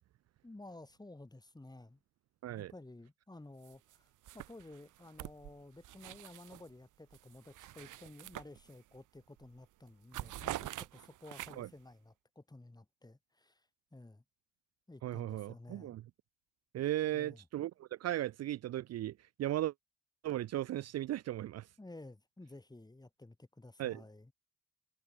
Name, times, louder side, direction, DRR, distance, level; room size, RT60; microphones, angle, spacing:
voice 1, 0.4-2.0 2.6-4.1 4.3-13.6 13.9-14.2 14.9-15.9 17.1-17.4 21.8-24.3, left 2 dB, 15° left, 5.4 m, -53 dB
sound 1, 3.6-4.0 4.2-6.7 7.1-9.0 9.4-9.6 9.9-11.8, right 14 dB, 85° right, 3.1 m, -46 dB
voice 2, 15.0-16.0 16.7-19.7 20.2-21.7 23.8-24.0, right 13 dB, 55° right, 0.5 m, -36 dB
cardioid pair, 90°, 30 cm